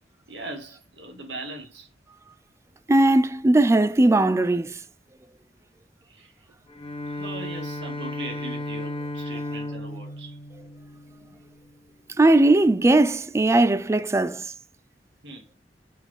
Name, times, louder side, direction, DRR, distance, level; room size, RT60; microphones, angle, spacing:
voice 1, 0.3-1.9 6.0-6.3 7.1-10.4 15.2-15.5, right 2 dB, 85° right, 1.6 m, -39 dB
voice 2, 2.9-4.8 12.2-14.5, right 2 dB, 15° right, 0.3 m, -19 dB
Bowed string instrument, 6.7-11.6, left 1 dB, 30° left, 1.2 m, -34 dB
5.8 x 4.2 x 4.1 m
head